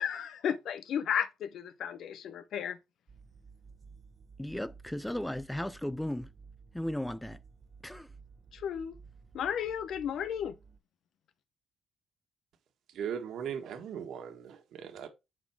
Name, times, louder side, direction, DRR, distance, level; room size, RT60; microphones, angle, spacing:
voice 1, 0.0-2.8 8.5-9.0 9.3-10.6, left 8 dB, 70° left, 0.7 m, -33 dB
sound 1, 3.1-10.8, right 5 dB, 40° right, 1.0 m, -54 dB
voice 2, 4.4-6.3 6.7-7.4 7.8-8.1, left 1 dB, 5° left, 0.4 m, -35 dB
voice 3, 12.9-15.1, right 8 dB, 75° right, 1.6 m, -38 dB
7.5 x 4.2 x 4.6 m
cardioid pair, 90°, 0 cm